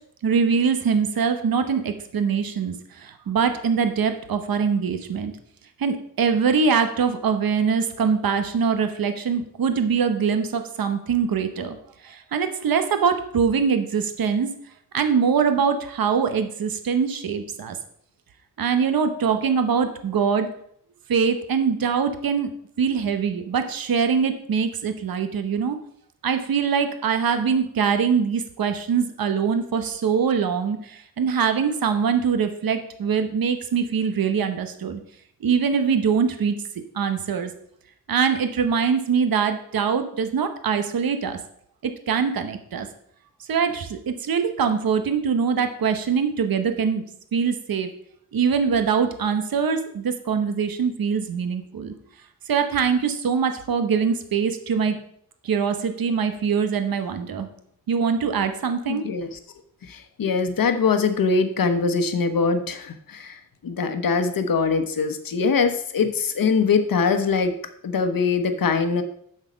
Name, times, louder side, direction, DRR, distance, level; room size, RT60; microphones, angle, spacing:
voice 1, 0.2-5.3 5.8-11.8 12.0-14.5 14.9-17.8 18.6-20.5 21.1-22.5 22.8-25.8 26.2-35.0 35.4-36.6 36.9-37.5 38.1-41.4 41.8-42.9 43.4-47.0 47.3-47.9 48.3-51.9 52.4-55.0 55.4-57.5 57.9-59.0, right 6 dB, 75° right, 8 dB, 0.9 m, -23 dB
voice 2, 58.9-59.4 59.9-67.6 67.8-69.0, left 5 dB, 70° left, 8 dB, 1.0 m, -22 dB
7.6 x 6.5 x 5.1 m, 0.69 s
cardioid pair, 75°, 36 cm